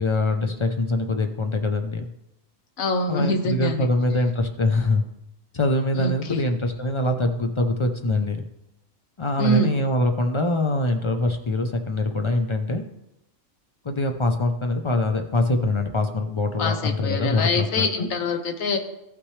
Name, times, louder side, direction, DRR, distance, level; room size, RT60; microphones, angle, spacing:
voice 1, 0.0-2.1 3.1-5.0 5.5-8.4 9.2-12.8 13.8-18.1, left 2 dB, 45° left, 5 dB, 0.3 m, -23 dB
voice 2, 2.8-3.9 5.9-6.4 9.4-9.7 16.6-18.8, left 1 dB, 80° left, 5 dB, 1.4 m, -25 dB
14.5 x 5.9 x 3.2 m, 0.87 s
omnidirectional pair, 1.4 m